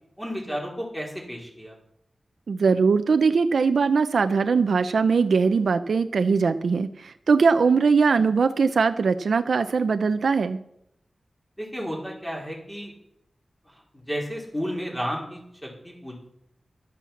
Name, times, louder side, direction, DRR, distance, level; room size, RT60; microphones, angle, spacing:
voice 1, 0.2-1.8 11.6-12.9 13.7-16.1, equal, 5° left, -2 dB, 4.3 m, -33 dB
voice 2, 2.5-10.6, right 5 dB, 85° right, 9 dB, 0.6 m, -21 dB
12.5 x 8.3 x 7.3 m, 0.78 s
wide cardioid pair, 115°, 0 cm